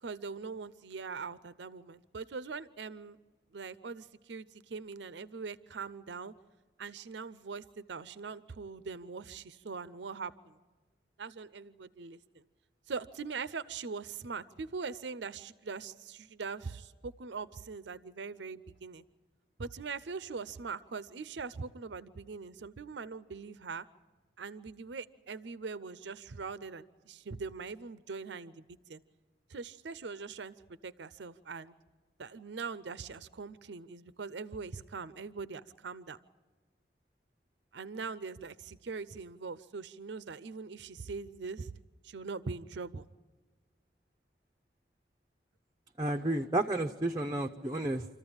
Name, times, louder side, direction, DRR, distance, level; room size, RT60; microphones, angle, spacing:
voice 1, 0.0-3.2 3.5-6.3 6.8-10.6 11.2-12.4 12.9-19.0 19.6-23.9 24.4-28.6 28.9-29.0 29.5-30.5 30.8-31.7 32.2-36.2 37.7-41.7 42.0-43.1, right 4 dB, 80° right, 15 dB, 0.6 m, -42 dB
voice 2, 46.0-48.1, right 1 dB, 20° right, 2 dB, 0.6 m, -31 dB
27.0 x 14.5 x 8.8 m, 1.3 s
head